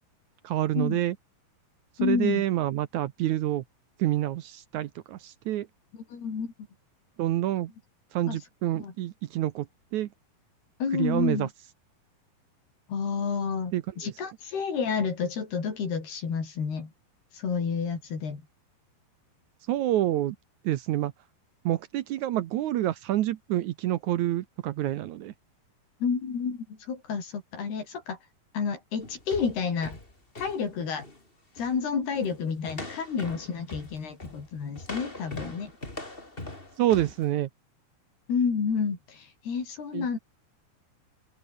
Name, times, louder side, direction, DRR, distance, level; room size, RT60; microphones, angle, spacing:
voice 1, 0.4-1.2 2.0-3.6 4.0-5.7 7.2-7.7 8.1-9.7 9.9-10.1 10.9-11.5 13.7-14.1 19.7-20.4 20.6-21.1 21.7-25.3 36.8-37.5 39.9-40.1, right 13 dB, 75° right, 1.8 m, -27 dB
voice 2, 2.0-2.4 6.1-6.5 8.3-8.4 8.7-8.9 10.8-11.5 12.9-16.9 17.3-18.4 26.0-28.2 28.5-30.0 30.4-31.1 31.6-35.7 38.3-40.2, left 6 dB, 90° left, 7.2 m, -30 dB
sound 1, 29.0-31.2 31.5-31.8 32.1-32.4 32.6-37.2, left 2 dB, 15° left, 3.9 m, -41 dB
open air
omnidirectional pair, 4.4 m